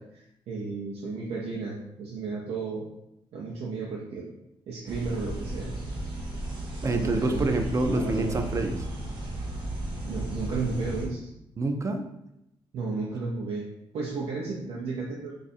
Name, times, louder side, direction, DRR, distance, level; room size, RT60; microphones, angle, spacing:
voice 1, 0.0-2.9 3.3-4.3 4.7-5.7 6.8-7.5 7.9-8.4 10.0-11.3 12.7-13.7 13.9-15.4, right 4 dB, 85° right, -4 dB, 0.5 m, -33 dB
sound 1, 4.9-11.1, right 1 dB, 50° right, 1.0 m, -34 dB
voice 2, 6.8-8.8 11.6-12.0, right 2 dB, 30° right, 6 dB, 0.4 m, -26 dB
2.6 x 2.4 x 4.1 m, 0.83 s
cardioid pair, 95°, 10 cm